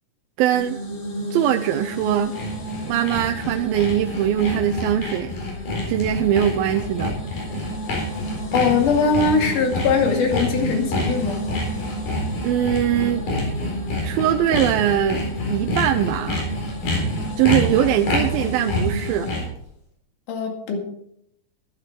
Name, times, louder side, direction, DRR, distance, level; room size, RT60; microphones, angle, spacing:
voice 1, 0.4-0.8 1.3-2.3 2.9-5.4 5.9-7.1 12.4-13.2 14.0-15.2 15.5-16.5 17.4-19.3, right 10 dB, 85° right, 5 dB, 2.5 m, -21 dB
sound 1, 0.5-19.4, right 1 dB, 40° left, 1.0 m, -33 dB
Sawing, 1.8-19.6, left 1 dB, 80° left, 6.0 m, -28 dB
voice 2, 8.5-11.5 20.3-20.8, left 4 dB, 65° left, 1 dB, 3.7 m, -21 dB
14.0 x 12.0 x 4.5 m, 0.74 s
omnidirectional pair, 4.1 m